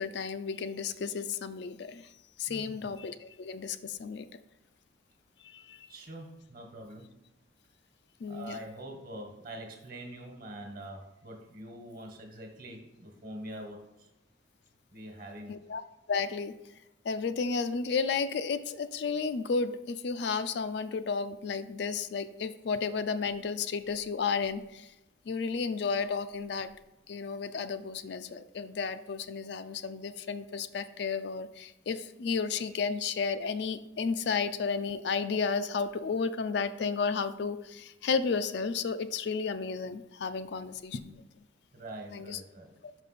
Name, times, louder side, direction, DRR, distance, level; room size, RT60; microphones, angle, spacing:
voice 1, 0.0-2.1 2.4-4.3 5.4-5.9 8.2-8.6 15.5-15.8 16.1-16.5 17.0-24.9 25.3-26.7 27.1-41.2 42.1-42.4, left 5 dB, 60° left, 11 dB, 0.4 m, -32 dB
voice 2, 2.5-2.9 5.9-7.1 8.3-13.8 14.9-15.5 41.7-42.7, right 1 dB, 45° right, 3 dB, 1.3 m, -44 dB
5.6 x 5.3 x 4.1 m, 0.96 s
head